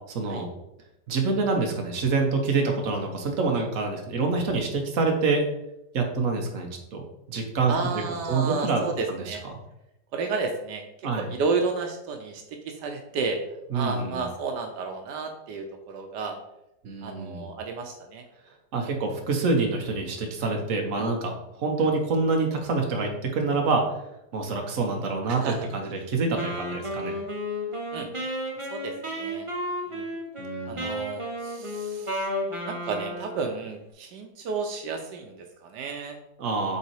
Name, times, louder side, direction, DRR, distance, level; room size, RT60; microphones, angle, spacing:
voice 1, 0.1-0.5 1.1-5.4 5.9-7.7 8.3-9.4 11.0-11.3 13.7-14.3 16.8-17.5 18.7-23.8 24.3-27.1 30.4-30.9 36.4-36.8, right 3 dB, 55° right, 2 dB, 1.3 m, -26 dB
voice 2, 7.7-9.4 10.1-10.8 11.2-13.4 13.7-16.4 17.0-18.2 18.8-19.0 21.0-21.1 21.8-21.9 25.3-25.7 27.9-28.1 28.7-29.5 29.9-30.1 30.7-32.3 32.6-36.2, right 4 dB, 80° right, 5 dB, 1.3 m, -32 dB
Wind instrument woodwind instrument, 26.4-33.5, equal, 20° right, 1.0 m, -32 dB
5.7 x 3.9 x 4.6 m, 0.86 s
omnidirectional pair, 1.8 m